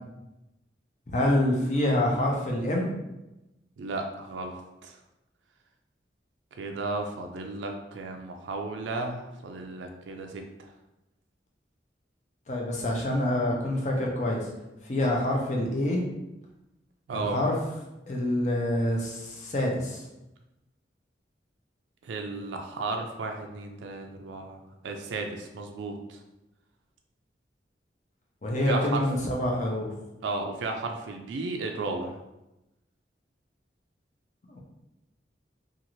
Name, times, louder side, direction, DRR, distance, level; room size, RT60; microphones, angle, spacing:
voice 1, 1.1-3.0 12.5-14.5 14.9-16.0 17.1-17.5 18.1-20.0 28.4-29.9 34.5-34.6, left 1 dB, 40° left, -1 dB, 0.6 m, -26 dB
voice 2, 3.8-5.0 6.6-10.7 17.1-17.4 22.0-26.2 28.7-29.1 30.2-32.2, right 3 dB, 85° right, 4 dB, 0.4 m, -34 dB
2.6 x 2.4 x 3.0 m, 0.95 s
head